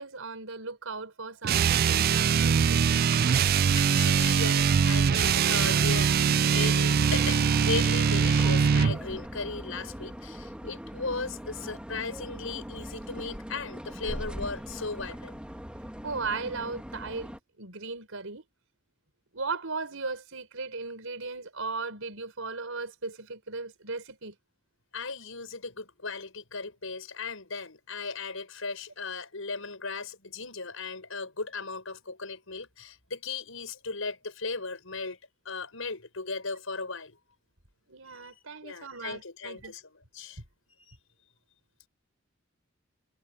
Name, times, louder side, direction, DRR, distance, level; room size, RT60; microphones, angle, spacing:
voice 1, 0.0-3.0 16.0-17.3 17.6-18.4 19.3-24.3 37.9-39.7, right 4 dB, 75° right, 4.8 m, -37 dB
sound 1, 1.4-9.0, right 6 dB, 50° right, 0.4 m, -23 dB
voice 2, 3.7-6.1 6.4-15.4 24.9-35.2 35.4-37.2 38.0-38.3 38.6-40.4 40.8-41.0, left 4 dB, 80° left, 5.9 m, -37 dB
sound 2, 7.0-17.4, equal, 5° right, 2.7 m, -40 dB
head